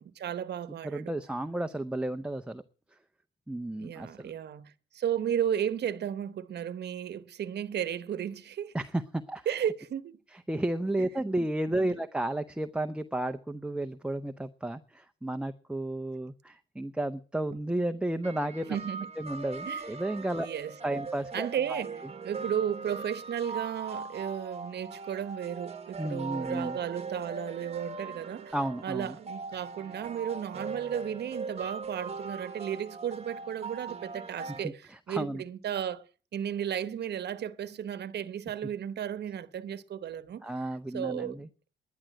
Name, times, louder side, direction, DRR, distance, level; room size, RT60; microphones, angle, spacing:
voice 1, 0.0-1.1 3.8-8.7 9.5-10.2 11.0-11.1 11.8-12.0 18.7-19.1 19.7-19.8 20.4-21.0 21.3-22.0 22.2-28.5 28.8-36.0 36.3-40.5 40.9-41.4, right 9 dB, 55° right, 1.0 m, -34 dB
voice 2, 0.8-2.6 3.5-4.3 8.7-9.6 10.5-18.8 19.2-20.5 20.8-21.8 26.0-26.8 28.5-29.2 34.6-35.4 40.4-41.5, right 1 dB, 5° right, 0.6 m, -33 dB
sound 1, 18.2-34.7, right 4 dB, 30° right, 1.1 m, -40 dB
11.0 x 10.5 x 7.5 m
cardioid pair, 90°, 20 cm